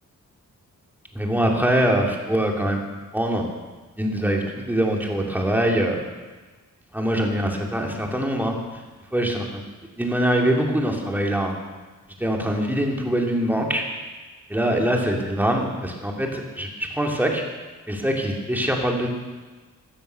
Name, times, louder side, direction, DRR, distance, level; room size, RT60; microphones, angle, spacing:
voice 1, 1.1-2.8 3.1-3.4 4.0-6.0 6.9-8.8 9.1-9.6 10.0-11.5 12.2-13.8 14.5-17.4 17.9-19.1, right 1 dB, 5° right, 0 dB, 2.5 m, -23 dB
15.5 x 13.0 x 6.8 m, 1.3 s
wide cardioid pair, 140°, 34 cm